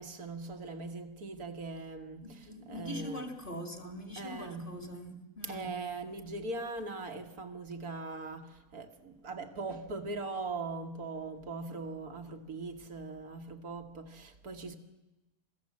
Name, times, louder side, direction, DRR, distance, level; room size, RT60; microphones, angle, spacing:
voice 1, 0.0-3.3 4.2-4.8 5.4-14.8, right 3 dB, 80° right, 2.1 m, -40 dB
voice 2, 2.2-5.7, equal, 35° left, 2.5 m, -42 dB
27.0 x 17.5 x 7.5 m
omnidirectional pair, 1.6 m